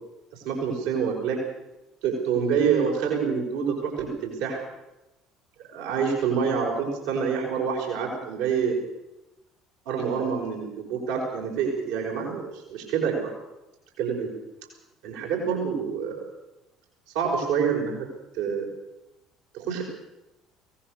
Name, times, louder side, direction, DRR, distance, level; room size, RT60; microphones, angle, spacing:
voice 1, 0.3-1.4 2.0-4.6 5.7-8.8 9.9-13.3 14.0-14.3 15.0-16.2 17.1-18.1 18.3-18.7 19.5-19.8, right 6 dB, 65° right, 0 dB, 5.2 m, -27 dB
23.0 x 18.0 x 6.6 m, 0.95 s
figure-of-eight pair, 55°, 0 cm